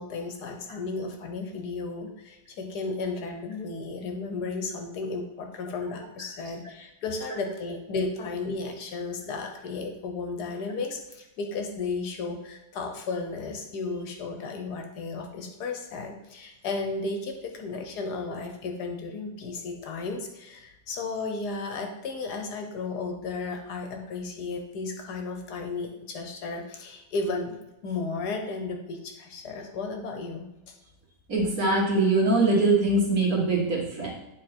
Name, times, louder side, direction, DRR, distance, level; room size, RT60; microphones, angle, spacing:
voice 1, 0.0-27.5 27.8-30.7, left 3 dB, 70° left, 4 dB, 1.4 m, -34 dB
voice 2, 31.3-34.1, right 2 dB, 55° right, -2 dB, 2.0 m, -22 dB
9.1 x 3.9 x 4.4 m, 0.97 s
omnidirectional pair, 1.8 m